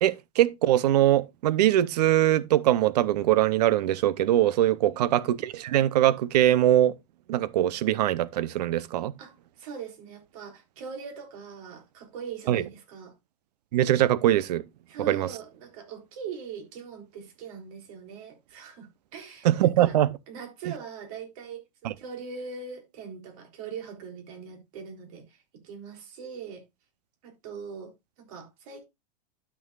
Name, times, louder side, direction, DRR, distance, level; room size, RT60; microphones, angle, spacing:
voice 1, 0.0-6.9 7.3-9.1 12.5-12.6 13.7-14.6 15.1-15.3 19.4-20.1 21.8-21.9, right 13 dB, 80° right, 0.7 m, -22 dB
voice 2, 9.2-13.1 14.9-20.0 20.3-26.6 27.2-27.9 28.2-28.9, right 6 dB, 55° right, 3.6 m, -41 dB
12.5 x 6.2 x 2.4 m
supercardioid pair, 160°, 21 cm